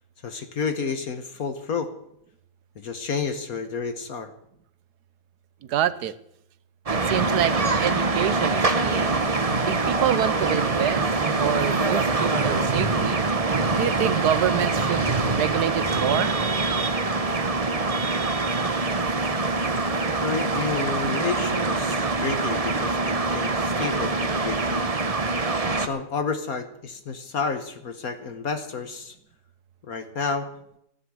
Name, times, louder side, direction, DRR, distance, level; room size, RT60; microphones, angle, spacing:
voice 1, 0.2-1.9 2.8-4.3 20.2-24.9 25.7-29.1 29.8-30.5, left 5 dB, 60° left, 8 dB, 1.5 m, -30 dB
voice 2, 5.7-6.1 6.9-9.1 9.7-11.0 11.4-13.2 13.8-15.1 15.3-16.4, right 10 dB, 70° right, 15 dB, 1.3 m, -27 dB
sound 1, 6.9-25.9, right 3 dB, 25° right, 0.9 m, -24 dB
15.5 x 10.5 x 7.8 m, 0.75 s
omnidirectional pair, 1.8 m